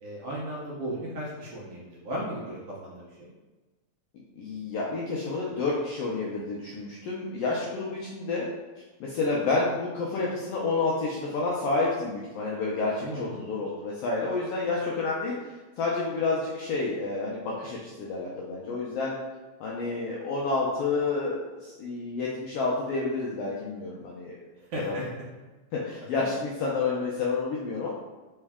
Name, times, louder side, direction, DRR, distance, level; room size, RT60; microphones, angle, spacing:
voice 1, 0.0-3.3 13.0-13.4 24.6-25.1, right 1 dB, 65° right, -5 dB, 1.6 m, -36 dB
voice 2, 4.4-8.5 9.0-15.3 15.8-19.2 19.6-24.3 24.8-24.9 25.7-27.9, left 3 dB, 80° left, -4 dB, 1.4 m, -29 dB
4.6 x 3.2 x 3.4 m, 1.2 s
omnidirectional pair, 3.3 m